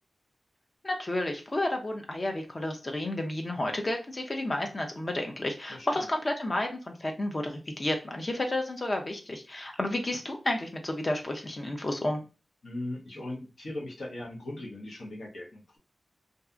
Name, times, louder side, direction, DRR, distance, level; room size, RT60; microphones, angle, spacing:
voice 1, 0.8-12.3, left 1 dB, 35° left, 3 dB, 0.6 m, -31 dB
voice 2, 12.6-15.8, left 1 dB, 85° left, -2 dB, 0.9 m, -39 dB
2.7 x 2.4 x 2.3 m, 0.32 s
wide cardioid pair, 85°, 0 cm